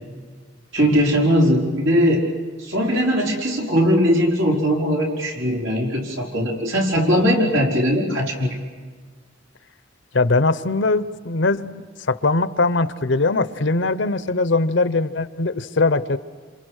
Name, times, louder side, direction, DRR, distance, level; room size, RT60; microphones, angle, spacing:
voice 1, 0.7-2.3 2.6-8.5, equal, 85° right, -2 dB, 5.0 m, -19 dB
voice 2, 10.1-16.2, left 3 dB, 70° left, 14 dB, 0.8 m, -21 dB
27.5 x 27.5 x 6.4 m, 1.5 s
head